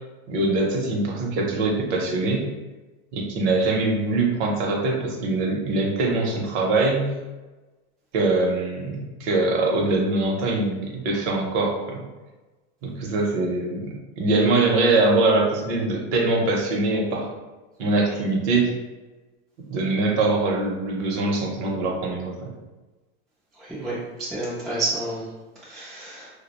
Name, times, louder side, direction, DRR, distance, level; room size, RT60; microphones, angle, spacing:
voice 1, 0.3-2.4 3.1-7.1 8.1-12.0 12.8-17.3 17.8-18.7 19.7-22.5, right 2 dB, 50° right, 0 dB, 0.7 m, -23 dB
voice 2, 23.6-25.3 25.7-26.3, right 2 dB, ahead, -10 dB, 0.3 m, -30 dB
2.3 x 2.0 x 2.9 m, 1.2 s
supercardioid pair, 140°, 34 cm